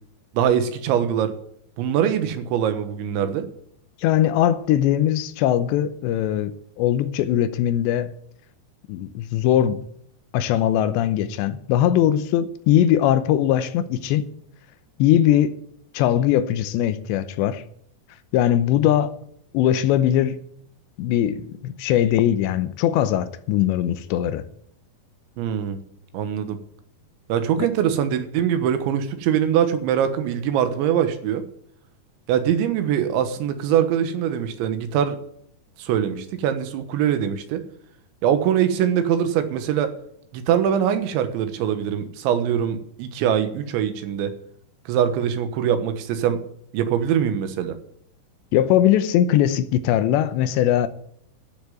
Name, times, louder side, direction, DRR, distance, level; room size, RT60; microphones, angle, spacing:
voice 1, 0.3-1.3 1.8-3.5 25.4-25.8 26.1-26.6 27.3-31.4 32.3-35.2 35.8-37.6 38.2-39.9 40.3-44.3 44.9-46.4 46.7-47.8, right 9 dB, 85° right, 3.6 m, -22 dB
voice 2, 4.0-8.1 8.9-9.8 10.3-14.3 15.0-15.6 15.9-17.6 18.3-19.1 19.5-20.4 21.0-24.4 27.6-27.7 48.5-50.9, left 11 dB, 80° left, 2.9 m, -20 dB
12.5 x 6.7 x 9.4 m
omnidirectional pair, 5.2 m